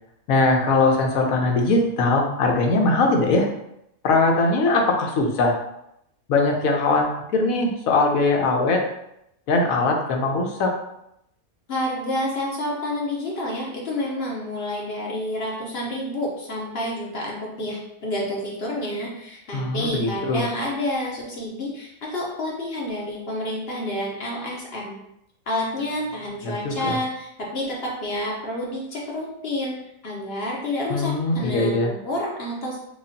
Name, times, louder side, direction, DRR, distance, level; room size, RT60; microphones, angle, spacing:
voice 1, 0.3-3.5 4.0-5.5 6.3-8.8 9.5-10.7 19.5-20.4 26.4-27.0 30.9-31.9, left 3 dB, 70° left, 2 dB, 1.0 m, -21 dB
voice 2, 11.7-24.9 25.5-29.8 30.0-32.8, left 1 dB, 50° left, -3 dB, 0.8 m, -29 dB
4.9 x 2.3 x 2.6 m, 0.80 s
omnidirectional pair, 1.6 m